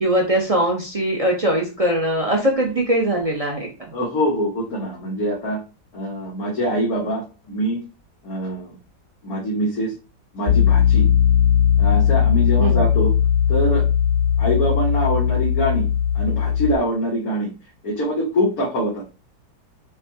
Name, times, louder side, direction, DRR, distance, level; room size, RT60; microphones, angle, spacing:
voice 1, 0.0-3.7 12.6-12.8, right 1 dB, 50° right, 0 dB, 0.4 m, -21 dB
voice 2, 3.9-5.6 5.9-7.8 8.2-8.7 9.2-9.9 10.3-11.1 11.8-13.1 13.5-13.8 14.4-15.9 16.2-17.5 17.8-19.0, equal, 60° left, -6 dB, 1.6 m, -24 dB
Piano, 10.5-16.8, left 8 dB, 85° left, 1.2 m, -18 dB
5.7 x 2.3 x 2.7 m, 0.31 s
omnidirectional pair, 1.8 m